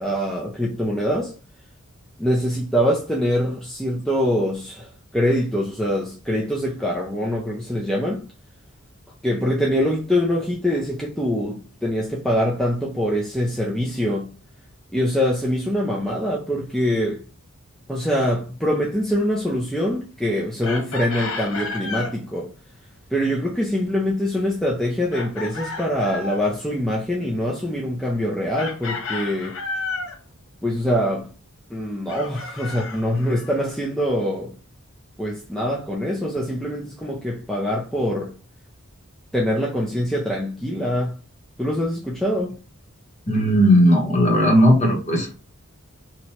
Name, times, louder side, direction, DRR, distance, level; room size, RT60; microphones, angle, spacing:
voice 1, 0.0-1.3 2.2-8.2 9.2-14.3 14.9-17.2 17.9-22.5 23.1-29.6 30.6-31.3 31.7-34.5 35.2-38.3 39.3-41.1 41.6-42.6, equal, ahead, 0.4 m, -24 dB
Chicken rooster, 20.6-22.2 25.1-26.5 28.6-30.2 32.1-33.6, left 3 dB, 65° left, 0.7 m, -32 dB
voice 2, 43.3-45.4, equal, 30° left, 1.0 m, -16 dB
2.9 x 2.2 x 4.1 m
head